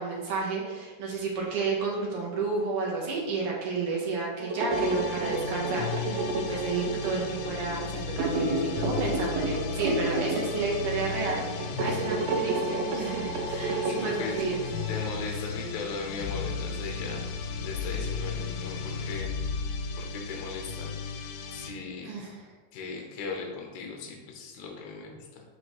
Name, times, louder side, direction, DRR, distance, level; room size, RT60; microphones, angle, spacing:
voice 1, 0.0-14.6 22.0-22.4, right 4 dB, 60° right, -3 dB, 1.6 m, -31 dB
sound 1, 4.4-15.2, right 2 dB, 80° right, 1.5 m, -31 dB
sound 2, 4.7-21.7, left 5 dB, 90° left, 2.3 m, -35 dB
voice 2, 13.5-14.4 14.9-17.3 17.6-19.3 20.0-20.9 21.5-22.2 22.7-25.4, left 4 dB, 70° left, 0 dB, 2.2 m, -38 dB
6.0 x 5.3 x 3.1 m, 1.2 s
omnidirectional pair, 3.8 m